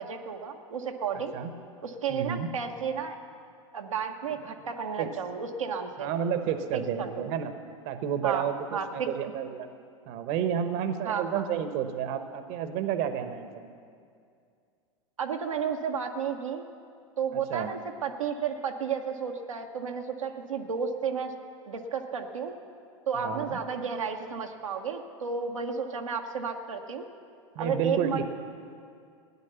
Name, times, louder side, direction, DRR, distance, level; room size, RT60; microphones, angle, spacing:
voice 1, 0.0-1.3 1.8-3.2 3.7-6.1 6.7-7.1 8.2-8.4 8.7-9.1 11.0-11.4 15.2-16.6 17.2-21.3 21.7-22.5 23.1-27.0 27.6-28.2, right 6 dB, 85° right, 2 dB, 1.0 m, -32 dB
voice 2, 2.1-2.5 5.0-5.1 6.0-7.5 7.8-9.7 10.1-13.7 17.3-17.7 23.2-23.6 27.5-28.2, right 8 dB, 50° right, 9 dB, 1.0 m, -31 dB
16.5 x 9.8 x 6.9 m, 2.3 s
hypercardioid pair, 95°, 16 cm